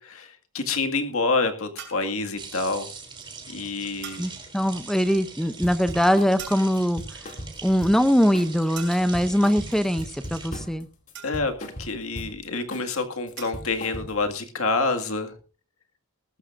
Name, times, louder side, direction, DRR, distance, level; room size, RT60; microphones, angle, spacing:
voice 1, 0.0-2.9 3.5-4.3 11.2-15.3, left 3 dB, 70° left, 6 dB, 2.0 m, -27 dB
sound 1, 1.8-2.2 4.0-4.4 6.4-7.0 8.7-9.3 11.1-11.7 13.4-13.7, right 7 dB, 55° right, 4.0 m, -42 dB
sound 2, 2.4-10.5, right 4 dB, 20° right, 3.3 m, -42 dB
voice 2, 4.2-7.0 7.6-10.9, equal, ahead, 11 dB, 0.5 m, -22 dB
sound 3, 5.6-6.4 6.7-8.1 8.3-8.6 8.9-10.8 11.1-12.4 12.7-13.0 13.3-14.3, equal, 35° left, 2.5 m, -38 dB
20.0 x 13.5 x 2.5 m, 0.34 s
head